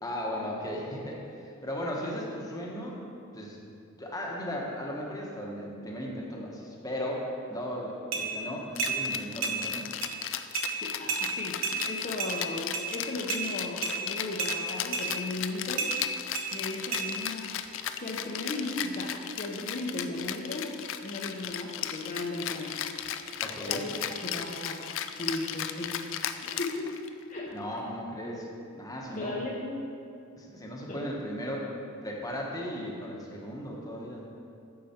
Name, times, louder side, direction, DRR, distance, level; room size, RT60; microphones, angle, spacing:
voice 1, 0.0-3.0 3.3-3.6 4.0-9.9 23.4-23.9 27.5-28.5 28.7-29.3 30.4-31.7 32.0-34.2, equal, 15° left, -2 dB, 1.1 m, -36 dB
sound 1, 8.1-8.3 8.8-9.0 9.4-9.6 10.0-10.1 10.5-10.7 11.1-11.2 11.6-11.8 12.2-12.3 12.7-12.9 13.3-13.4 13.8-14.0 14.4-14.5 14.9-15.1 15.8-15.9 16.3-16.5 16.9-17.0, right 6 dB, 75° right, 1.1 m, -30 dB
Rattle (instrument), 8.7-27.2, left 10 dB, 65° left, 0.4 m, -36 dB
voice 2, 10.8-15.9 16.5-17.5 17.9-20.7 21.0-22.7 23.7-23.9 24.2-24.8 25.2-27.0 27.3-27.6 29.1-29.8 30.9-31.0, left 2 dB, 40° left, -3 dB, 0.7 m, -36 dB
8.6 x 6.8 x 4.3 m, 2.5 s
head